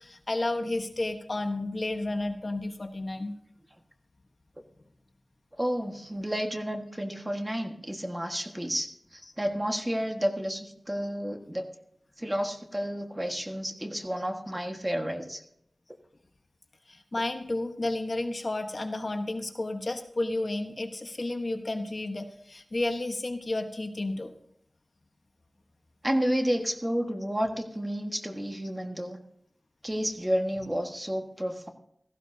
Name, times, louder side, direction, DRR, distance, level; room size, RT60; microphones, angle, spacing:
voice 1, 0.0-3.3 16.9-24.3, left 2 dB, 45° left, 5 dB, 1.2 m, -32 dB
voice 2, 5.6-11.7 12.2-15.4 26.0-29.2 29.8-31.7, equal, 15° right, 4 dB, 1.5 m, -31 dB
17.0 x 15.0 x 2.7 m, 0.71 s
wide cardioid pair, 80°, 0 cm